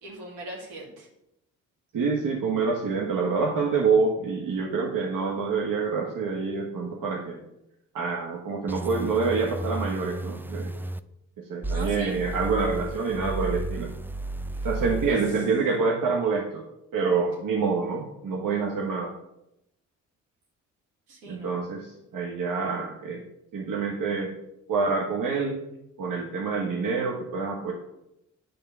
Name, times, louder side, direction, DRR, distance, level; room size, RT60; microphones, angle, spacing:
voice 1, 0.0-1.1 11.7-12.2 14.5-14.7 15.1-15.2 21.1-21.5, right 1 dB, 85° right, -3 dB, 2.5 m, -40 dB
voice 2, 1.9-7.4 7.9-10.8 11.4-13.9 14.6-16.6 16.9-19.1 21.3-23.2 23.5-24.3 24.7-25.6 26.0-27.7, right 4 dB, 60° right, 0 dB, 1.4 m, -27 dB
sound 1, 8.7-11.0 11.6-15.2, right 2 dB, 5° right, 0.5 m, -33 dB
8.8 x 4.2 x 6.8 m, 0.85 s
hypercardioid pair, 45°, 36 cm